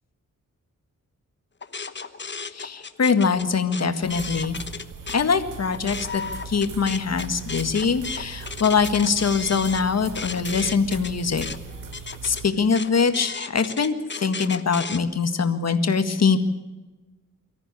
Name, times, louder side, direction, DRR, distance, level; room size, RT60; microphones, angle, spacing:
sound 1, 1.6-5.2 5.6-15.0, left 5 dB, 35° left, 1.1 m, -35 dB
voice 1, 2.5-4.6 5.1-11.5 12.2-16.4, left 5 dB, 55° left, 8 dB, 1.9 m, -23 dB
sound 2, 4.0-12.5, right 5 dB, 90° right, 1.7 m, -39 dB
24.0 x 14.0 x 8.4 m, 1.2 s
wide cardioid pair, 120°, 32 cm